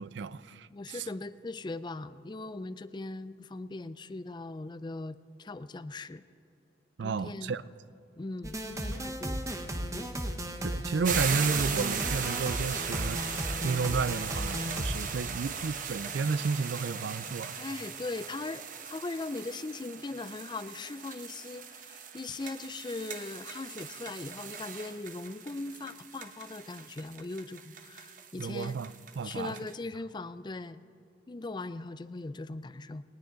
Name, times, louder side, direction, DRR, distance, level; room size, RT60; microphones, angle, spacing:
voice 1, 0.0-1.1 7.0-7.6 10.6-17.6 28.4-29.6, right 5 dB, 75° right, 17 dB, 0.4 m, -32 dB
voice 2, 0.7-6.2 7.0-7.6 8.2-10.1 17.6-28.8 29.2-30.8 31.3-33.0, left 2 dB, 25° left, 13 dB, 0.4 m, -40 dB
sound 1, 8.4-15.0, equal, 20° right, 1.0 m, -35 dB
sound 2, 11.0-29.7, right 6 dB, 45° right, 1.0 m, -38 dB
19.0 x 17.5 x 3.9 m, 2.7 s
head